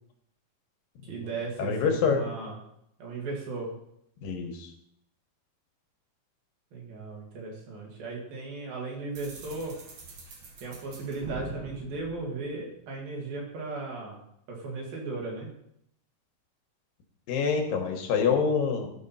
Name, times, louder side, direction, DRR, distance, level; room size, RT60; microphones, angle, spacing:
voice 1, 1.1-2.5 3.0-3.7 6.7-9.8 10.6-14.2 14.5-15.5, right 3 dB, 85° right, -2 dB, 3.9 m, -36 dB
voice 2, 1.6-2.3 4.2-4.7 17.3-18.9, left 6 dB, 80° left, 3 dB, 2.8 m, -26 dB
sound 1, 9.1-13.0, right 4 dB, 70° right, 1.2 m, -43 dB
12.0 x 4.4 x 5.6 m, 0.74 s
omnidirectional pair, 4.1 m